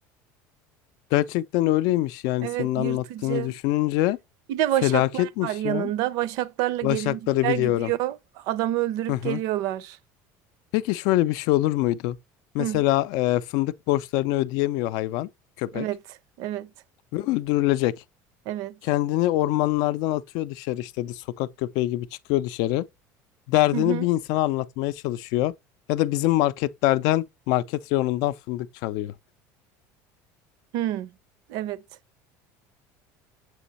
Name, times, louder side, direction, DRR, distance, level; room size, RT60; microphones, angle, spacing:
voice 1, 1.1-4.2 4.8-5.9 6.8-7.9 9.1-9.4 10.7-12.2 12.5-15.3 15.6-15.9 17.1-17.9 18.8-22.9 23.5-25.5 25.9-29.1, left 16 dB, 65° left, 0.4 m, -24 dB
voice 2, 2.4-3.5 4.5-10.0 12.6-12.8 15.7-16.0 16.4-16.7 18.5-18.8 23.7-24.1 30.7-31.1 31.5-31.8, right 13 dB, 60° right, 0.6 m, -28 dB
7.6 x 3.0 x 4.1 m
cardioid pair, 155°, 7 cm